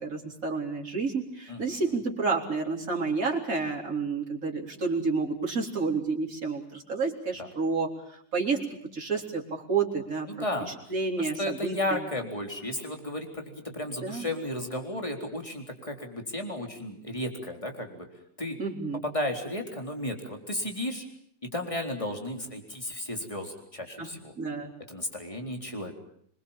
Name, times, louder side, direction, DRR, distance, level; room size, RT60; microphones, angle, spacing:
voice 1, 0.0-7.9 8.3-8.6 8.9-10.3 10.9-12.0 14.0-14.3 18.6-19.0 24.0-24.1 24.4-24.7, right 4 dB, 50° right, 0 dB, 4.3 m, -30 dB
voice 2, 1.5-1.8 7.4-7.5 10.3-10.7 11.2-18.1 18.4-18.6 19.0-21.0 21.5-24.3 24.9-25.9, left 1 dB, 15° left, 3 dB, 4.0 m, -34 dB
26.0 x 22.5 x 7.3 m, 0.68 s
omnidirectional pair, 1.9 m